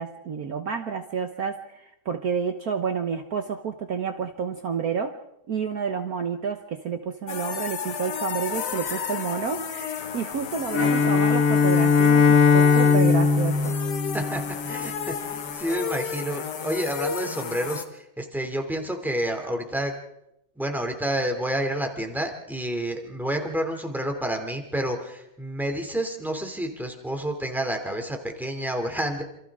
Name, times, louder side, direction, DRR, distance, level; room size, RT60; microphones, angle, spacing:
voice 1, 0.0-5.2 5.5-13.7, right 6 dB, 60° right, 6 dB, 1.5 m, -30 dB
sound 1, 7.3-17.9, left 6 dB, 70° left, 1.8 m, -33 dB
Bowed string instrument, 10.7-14.9, left 5 dB, 55° left, 1.7 m, -19 dB
voice 2, 14.1-19.9 20.6-29.2, right 1 dB, ahead, 3 dB, 2.7 m, -29 dB
27.5 x 27.5 x 3.7 m, 0.85 s
omnidirectional pair, 1.9 m